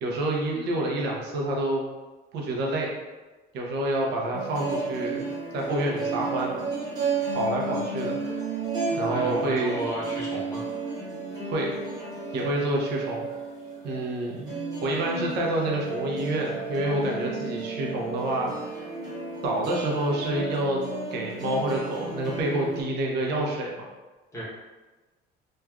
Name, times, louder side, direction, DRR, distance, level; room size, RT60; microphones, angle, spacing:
voice 1, 0.0-1.9 2.3-2.9 3.5-5.2 5.5-6.6 7.3-8.2 9.0-9.8 11.4-11.8 12.3-13.3 13.8-14.5 14.8-18.8 19.4-20.8 21.1-23.9, right 1 dB, 65° right, -1 dB, 0.6 m, -28 dB
sound 1, 4.3-22.8, right 3 dB, 20° right, 1.0 m, -33 dB
voice 2, 9.1-10.6 24.3-24.4, right 1 dB, 15° left, -7 dB, 0.8 m, -33 dB
3.1 x 2.4 x 2.2 m, 1.2 s
cardioid pair, 165°, 19 cm